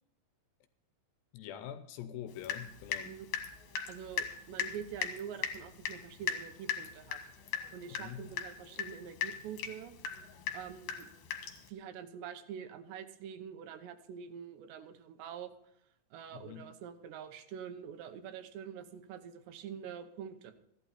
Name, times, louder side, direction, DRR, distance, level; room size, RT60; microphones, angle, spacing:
voice 1, 1.3-3.1 7.9-8.3 16.3-16.7, left 10 dB, 80° left, 2.5 m, -45 dB
Water tap faucet / Drip, 2.4-3.1 3.3-11.7, left 8 dB, 65° left, 2.8 m, -38 dB
voice 2, 3.9-7.2 7.7-9.9 10.5-11.1 11.7-15.5 16.1-20.5, right 8 dB, 75° right, 2.9 m, -45 dB
15.0 x 11.5 x 4.2 m
omnidirectional pair, 5.3 m